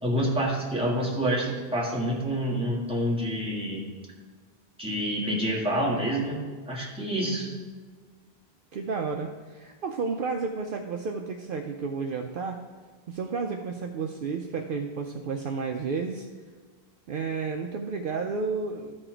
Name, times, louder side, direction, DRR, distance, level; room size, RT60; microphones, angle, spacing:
voice 1, 0.0-3.9 4.8-7.5, equal, 5° right, -5 dB, 1.8 m, -28 dB
voice 2, 7.1-7.6 8.7-12.6 13.1-16.3 17.1-19.0, right 4 dB, 65° right, 3 dB, 0.7 m, -32 dB
13.0 x 4.4 x 4.4 m, 1.4 s
omnidirectional pair, 1.0 m